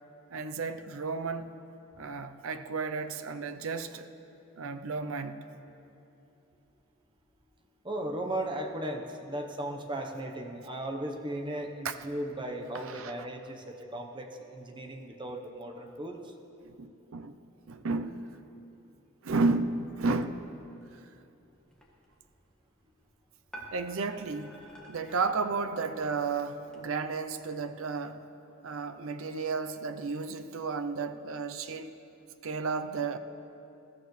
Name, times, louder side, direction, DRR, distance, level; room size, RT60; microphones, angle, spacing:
voice 1, 0.3-1.6 2.0-4.1 4.6-5.4 11.8-11.9 12.8-13.3 16.6-17.3 17.7-18.2 19.2-20.5 23.7-24.6 24.9-28.2 28.6-32.0 32.4-33.2, right 4 dB, 80° right, 0.6 m, -33 dB
voice 2, 7.8-16.3, right 1 dB, 25° right, 0.9 m, -36 dB
sound 1, 21.7-26.8, right 1 dB, 5° left, 1.7 m, -52 dB
21.0 x 14.0 x 3.2 m
head